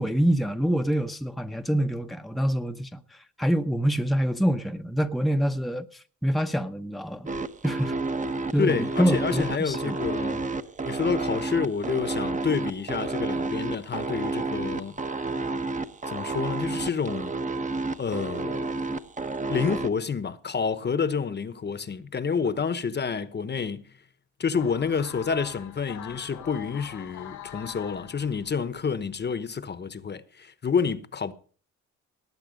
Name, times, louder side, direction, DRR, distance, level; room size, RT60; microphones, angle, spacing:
voice 1, 0.0-7.3 7.6-8.0 8.5-10.0 10.3-10.4, right 1 dB, ahead, 0.9 m, -26 dB
sound 1, 7.3-19.9, right 3 dB, 25° right, 1.1 m, -30 dB
voice 2, 8.6-10.4 10.8-14.9 16.1-17.3 18.0-18.8 19.5-24.0 24.4-31.3, left 6 dB, 35° left, 1.1 m, -29 dB
sound 2, 24.5-28.9, left 10 dB, 90° left, 2.6 m, -43 dB
19.0 x 8.4 x 5.2 m
cardioid pair, 90°, 30 cm